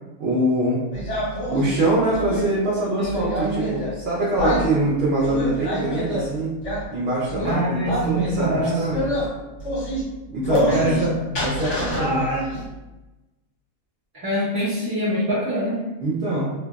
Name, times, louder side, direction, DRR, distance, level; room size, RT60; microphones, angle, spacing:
voice 1, 0.2-0.8 1.5-6.6 6.9-9.1 10.3-12.3 16.0-16.5, right 1 dB, 60° right, -6 dB, 0.8 m, -24 dB
sound 1, 0.9-2.4 3.0-3.9 4.4-4.7 5.2-6.3 6.6-6.9 7.3-7.5 7.9-8.5 8.9-9.3 9.6-10.0 10.4-11.1 11.3-12.6, equal, 60° left, 1.2 m, -26 dB
voice 2, 3.0-3.3 7.4-8.7 10.7-11.1 14.2-15.8, right 1 dB, 25° right, -10 dB, 0.6 m, -24 dB
3.0 x 2.6 x 2.3 m, 1.1 s
omnidirectional pair, 1.5 m